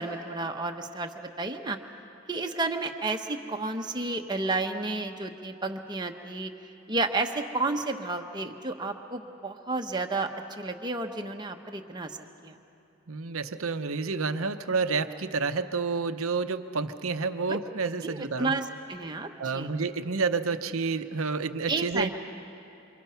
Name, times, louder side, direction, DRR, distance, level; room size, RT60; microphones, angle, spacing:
voice 1, 0.0-1.8 2.3-6.5 6.9-12.2 12.4-12.6 17.5-17.6 18.0-19.7 21.7-22.1, right 3 dB, 20° right, 3 dB, 1.1 m, -31 dB
voice 2, 13.1-18.5 19.4-22.1, right 4 dB, 85° right, 9 dB, 0.8 m, -29 dB
28.0 x 26.0 x 5.8 m, 2.7 s
head